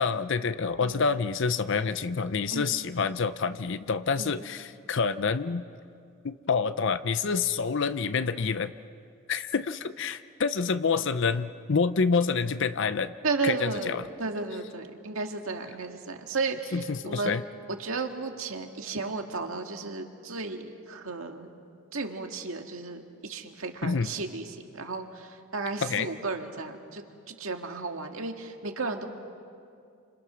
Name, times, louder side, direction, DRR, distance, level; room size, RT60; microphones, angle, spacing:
voice 1, 0.0-5.6 6.2-8.7 9.3-13.1 13.4-14.0 16.7-17.4 23.8-24.1 25.8-26.1, left 5 dB, 60° left, 12 dB, 0.6 m, -27 dB
voice 2, 13.2-17.4 17.7-21.5 21.9-29.1, right 3 dB, 75° right, 4 dB, 2.0 m, -34 dB
29.5 x 26.5 x 6.3 m, 2.4 s
head